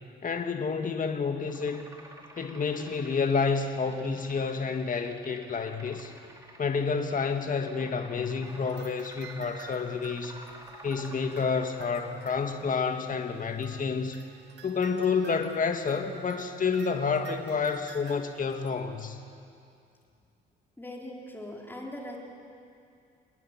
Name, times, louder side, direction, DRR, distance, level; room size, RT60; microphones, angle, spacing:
voice 1, 0.2-1.9 2.4-6.1 6.6-10.4 10.8-14.2 14.6-19.2, left 5 dB, 40° left, 5 dB, 1.9 m, -29 dB
sound 1, 1.5-12.8, right 1 dB, 15° right, 2.6 m, -51 dB
sound 2, 8.4-13.1 13.6-18.7, right 4 dB, 60° right, 2.0 m, -50 dB
voice 2, 20.8-22.2, left 1 dB, 10° left, -2 dB, 4.4 m, -40 dB
28.5 x 10.5 x 10.0 m, 2.4 s
cardioid pair, 90°, 20 cm